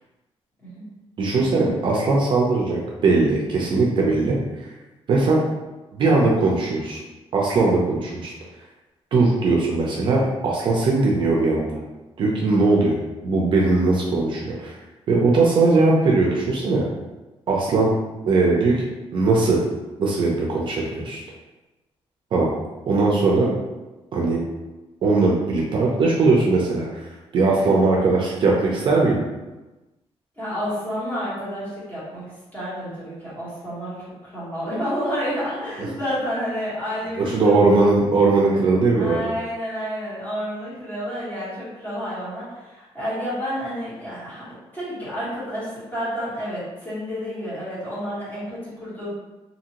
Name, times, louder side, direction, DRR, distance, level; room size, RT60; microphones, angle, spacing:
voice 1, 1.2-4.7 5.1-5.4 5.9-7.0 7.3-8.3 9.1-11.8 12.2-14.8 15.1-16.8 17.5-17.9 18.2-18.8 19.1-19.6 20.0-21.2 22.3-22.5 22.9-23.5 24.1-24.4 25.0-27.0 27.3-29.2 37.2-39.2, right 3 dB, 50° right, -3 dB, 0.5 m, -19 dB
voice 2, 30.4-32.2 32.5-37.9 38.9-44.4 44.7-49.1, equal, 15° left, -11 dB, 1.4 m, -30 dB
2.7 x 2.6 x 2.8 m, 1.1 s
wide cardioid pair, 175°, 11 cm